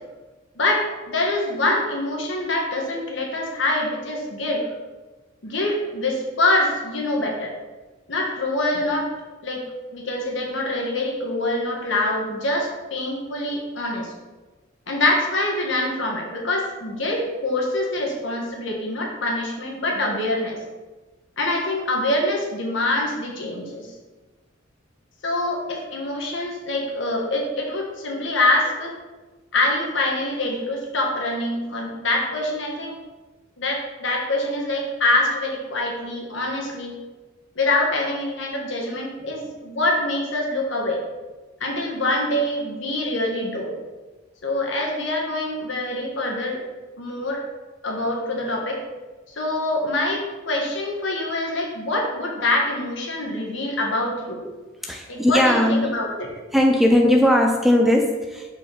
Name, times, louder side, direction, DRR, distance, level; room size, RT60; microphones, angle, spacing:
voice 1, 0.5-4.7 5.4-7.5 8.1-9.1 9.4-9.6 9.9-14.1 14.9-20.6 21.4-23.9 25.2-28.9 29.5-33.0 33.6-36.9 37.5-41.0 41.6-43.7 44.4-46.6 47.0-47.4 47.8-48.8 49.4-54.4 55.1-56.3, left 2 dB, 65° left, -1 dB, 1.4 m, -25 dB
voice 2, 54.8-55.9 56.5-58.5, left 1 dB, ahead, 1 dB, 0.4 m, -18 dB
6.1 x 4.9 x 4.0 m, 1.2 s
head